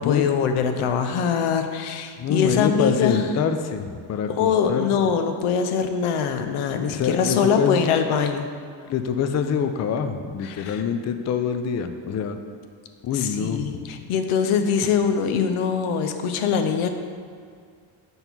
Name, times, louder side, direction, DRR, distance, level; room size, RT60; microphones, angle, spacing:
voice 1, 0.0-3.3 4.4-8.5 10.4-10.8 13.1-16.9, left 6 dB, 90° left, 7 dB, 0.6 m, -23 dB
voice 2, 2.2-5.1 6.9-7.8 8.9-12.4 13.0-14.0, left 7 dB, 35° left, 8 dB, 0.4 m, -25 dB
5.3 x 4.1 x 4.4 m, 2.1 s
cardioid pair, 80°, 50 cm